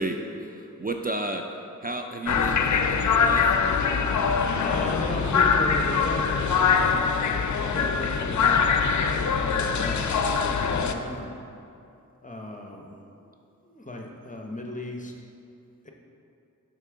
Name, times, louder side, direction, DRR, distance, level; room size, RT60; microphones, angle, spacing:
voice 1, 0.0-1.5 1.8-3.5, right 2 dB, 25° right, 4 dB, 0.4 m, -32 dB
sound 1, 2.3-10.9, left 6 dB, 60° left, 0.5 m, -23 dB
voice 2, 4.6-8.8 9.1-11.4 12.2-13.3 13.6-15.1 15.8-15.9, left 1 dB, 25° left, 2 dB, 0.8 m, -36 dB
6.5 x 5.9 x 3.7 m, 2.6 s
cardioid pair, 45°, 34 cm